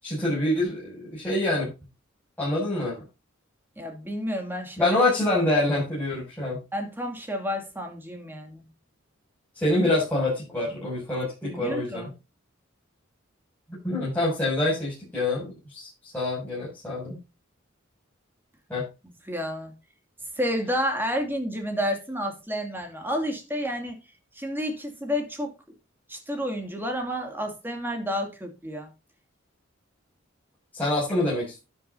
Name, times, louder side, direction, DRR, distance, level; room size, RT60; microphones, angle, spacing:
voice 1, 0.0-1.7 2.4-3.0 4.8-6.6 9.5-12.1 13.8-17.2 18.7-18.9 30.7-31.6, left 2 dB, 10° left, -9 dB, 7.1 m, -26 dB
voice 2, 3.8-4.9 6.7-8.6 11.4-12.1 19.3-19.7 20.4-24.0 24.4-25.5 26.1-28.9, equal, 10° right, 3 dB, 2.7 m, -30 dB
12.5 x 10.0 x 2.8 m, 0.27 s
head